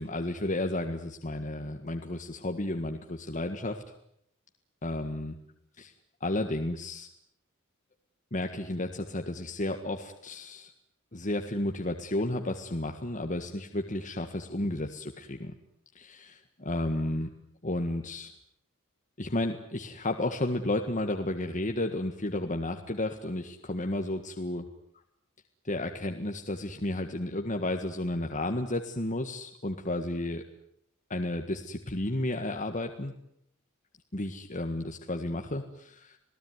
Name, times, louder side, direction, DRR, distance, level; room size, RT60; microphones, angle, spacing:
voice 1, 0.0-3.8 4.8-5.4 5.8-5.9 6.2-7.1 8.3-10.7 11.1-15.5 16.0-17.3 17.6-18.3 19.2-24.7 25.7-30.4 31.1-33.1 34.1-36.2, left 1 dB, 35° left, 4 dB, 1.8 m, -32 dB
28.5 x 18.5 x 9.6 m, 0.74 s
head